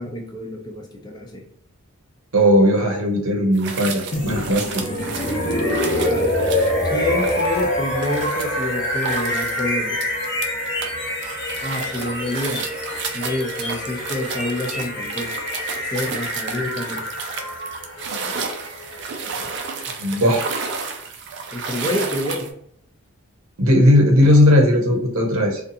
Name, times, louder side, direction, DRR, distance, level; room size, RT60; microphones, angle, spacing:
voice 1, 0.0-1.4 6.1-6.3 6.8-10.1 11.6-12.7 13.1-15.4 15.9-17.0 21.5-22.5, left 1 dB, 20° left, 1 dB, 0.4 m, -28 dB
voice 2, 2.3-4.8 20.0-20.5 23.6-25.6, left 1 dB, 70° right, 1 dB, 0.7 m, -17 dB
sound 1, 3.6-10.9 11.2-22.5, right 5 dB, 50° right, 0.3 m, -32 dB
sound 2, 4.1-20.0, left 1 dB, 50° left, 0.8 m, -26 dB
2.6 x 2.3 x 2.6 m, 0.68 s
head